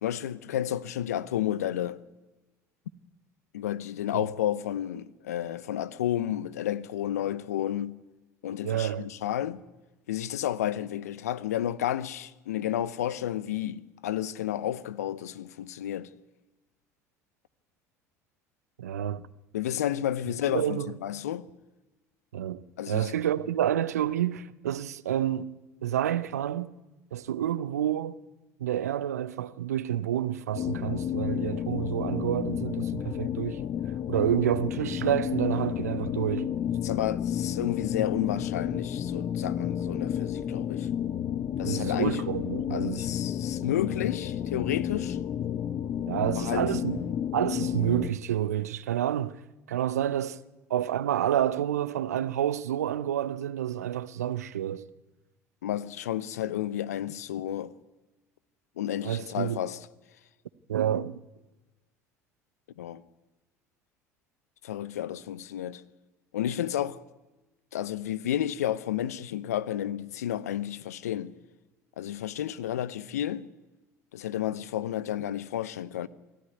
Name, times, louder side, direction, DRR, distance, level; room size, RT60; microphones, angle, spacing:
voice 1, 0.0-2.0 3.5-8.0 8.4-9.6 10.1-16.1 19.5-21.5 22.8-23.1 36.8-40.9 41.6-42.2 42.7-45.2 46.3-46.6 55.6-57.7 58.8-59.8 62.8-63.0 64.6-65.8 66.3-67.0 67.7-71.3 72.0-73.5 74.1-76.1, left 11 dB, 80° left, 0.8 m, -31 dB
voice 2, 8.6-9.0 18.8-19.2 20.5-20.9 22.3-26.7 27.1-28.2 28.6-33.6 34.1-36.5 41.6-43.0 46.0-49.4 49.7-50.4 50.7-54.9 59.0-59.6 60.7-61.2, right 11 dB, 80° right, 0.8 m, -29 dB
sound 1, 30.5-48.1, left 9 dB, 45° left, 0.9 m, -31 dB
24.0 x 14.0 x 9.5 m
hypercardioid pair, 70°, 8 cm